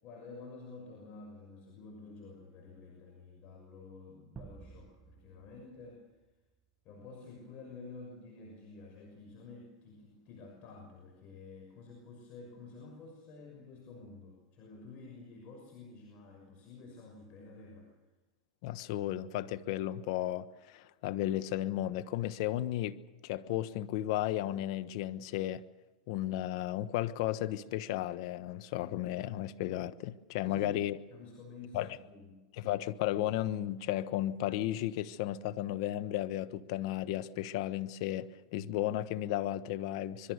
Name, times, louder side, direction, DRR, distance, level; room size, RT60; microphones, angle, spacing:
voice 1, 0.0-6.0 6.8-17.9 30.4-30.8 31.1-32.3, left 3 dB, 45° left, 6.3 m, -50 dB
sound 1, 4.4-6.9, right 5 dB, 20° right, 1.2 m, -53 dB
voice 2, 18.6-25.6 26.1-31.0 31.7-31.9 32.6-40.3, left 13 dB, 60° left, 1.2 m, -34 dB
25.5 x 22.0 x 6.7 m
hypercardioid pair, 125°, 3 cm